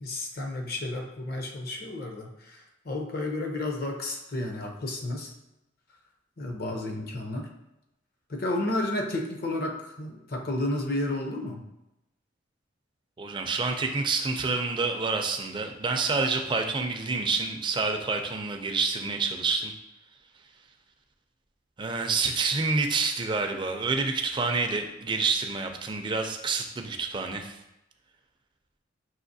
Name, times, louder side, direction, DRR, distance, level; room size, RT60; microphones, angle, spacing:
voice 1, 0.0-5.3 6.4-7.5 8.3-11.6, left 1 dB, 55° left, 2 dB, 0.6 m, -32 dB
voice 2, 13.2-19.7 21.8-27.6, right 4 dB, 25° right, 4 dB, 0.4 m, -28 dB
5.6 x 2.8 x 2.6 m, 0.90 s
head